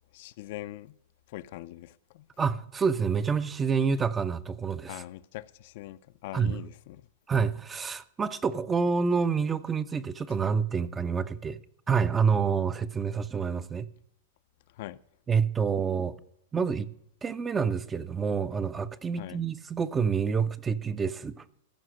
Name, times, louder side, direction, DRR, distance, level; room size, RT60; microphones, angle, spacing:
voice 1, 0.1-1.0 1.3-2.3 4.9-7.0 14.7-15.0 19.2-19.4, left 16 dB, 55° left, 0.4 m, -42 dB
voice 2, 2.4-5.0 6.3-6.6 7.3-11.6 11.9-13.9 15.3-16.2 16.5-16.9 17.2-21.4, right 6 dB, 15° right, 0.4 m, -28 dB
14.5 x 5.7 x 6.3 m
hypercardioid pair, 145°, 0 cm